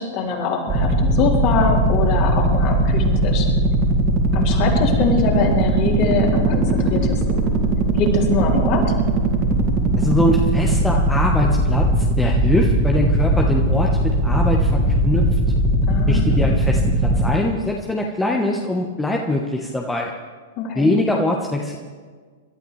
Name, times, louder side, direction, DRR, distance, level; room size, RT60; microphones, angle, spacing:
voice 1, 0.0-3.5 4.3-7.4 7.9-8.8 15.9-16.4 20.6-20.9, left 4 dB, 40° left, -2 dB, 4.0 m, -23 dB
sound 1, 0.7-17.3, right 1 dB, 30° right, 2.5 m, -19 dB
voice 2, 10.0-15.2 16.1-20.1 20.7-21.8, left 1 dB, 10° left, 1 dB, 1.2 m, -22 dB
27.0 x 13.0 x 3.3 m, 1.5 s
figure-of-eight pair, 100°, 0 cm